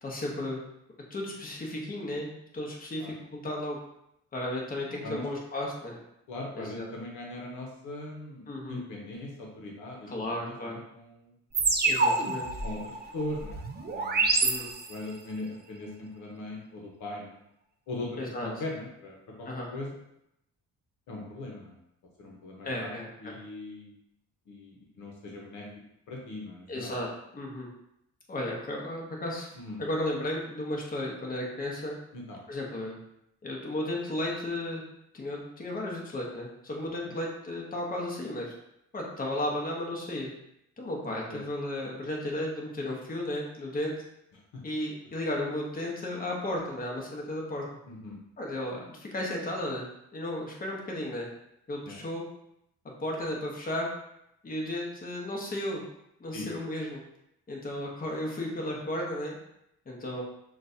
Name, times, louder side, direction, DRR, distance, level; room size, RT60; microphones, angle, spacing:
voice 1, 0.0-0.6 1.1-3.8 4.3-6.0 6.5-6.9 8.5-8.8 10.1-10.8 11.8-12.5 14.4-14.7 18.2-18.5 19.4-19.7 22.6-23.4 26.7-27.1 27.3-27.7 28.3-29.5 29.8-32.0 32.5-33.0 33.4-34.8 35.1-38.5 38.9-40.3 40.8-43.9 44.6-47.6 48.4-49.9 50.1-51.3 51.7-52.2 53.0-53.9 54.4-55.8 56.2-57.0 57.5-59.4 59.9-60.2, left 1 dB, 30° left, -2 dB, 1.1 m, -34 dB
voice 2, 6.3-11.3 12.6-13.6 13.9-14.3 14.9-17.4 17.9-20.0 21.1-21.7 22.2-22.9 23.2-23.9 24.5-25.7 26.1-26.9 29.6-29.8 32.1-32.4 37.0-37.1 41.3-41.4 44.5-44.6 47.9-48.2 51.9-52.0 56.3-56.5, left 2 dB, 80° left, -1 dB, 1.0 m, -40 dB
sound 1, 11.5-15.2, right 3 dB, 35° right, 0.6 m, -27 dB
6.0 x 2.5 x 2.7 m, 0.80 s
cardioid pair, 90°, 30 cm